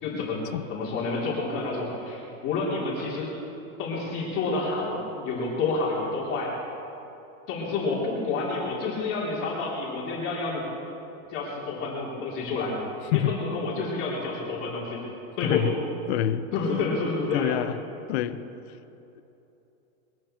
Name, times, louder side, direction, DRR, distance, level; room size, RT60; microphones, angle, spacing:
voice 1, 0.0-0.4 0.7-3.3 3.8-6.5 7.5-10.6 11.3-12.7 13.1-15.0 15.4-15.7 16.5-17.5, left 3 dB, 30° left, -5 dB, 3.3 m, -29 dB
voice 2, 15.4-15.8 16.1-16.5 17.3-17.8 18.1-18.4 19.1-19.2, left 12 dB, 50° left, 11 dB, 0.8 m, -26 dB
21.5 x 14.0 x 4.4 m, 2.9 s
supercardioid pair, 160°, 42 cm